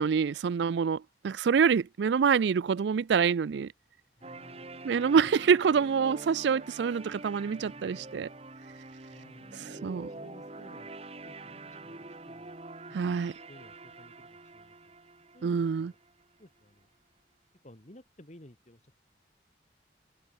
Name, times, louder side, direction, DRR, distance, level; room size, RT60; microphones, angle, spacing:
voice 1, 0.0-3.7 4.8-8.3 9.5-10.1 12.9-13.3 15.4-15.9, right 6 dB, 75° right, 0.4 m, -26 dB
voice 2, 4.2-4.7 9.1-10.9 11.2-12.0 12.3-12.5 12.9-13.2 13.5-14.9 15.3-16.0 16.4-16.9 17.6-18.9, left 1 dB, 40° left, 2.5 m, -55 dB
sound 1, 4.2-16.2, right 2 dB, 35° right, 2.0 m, -46 dB
head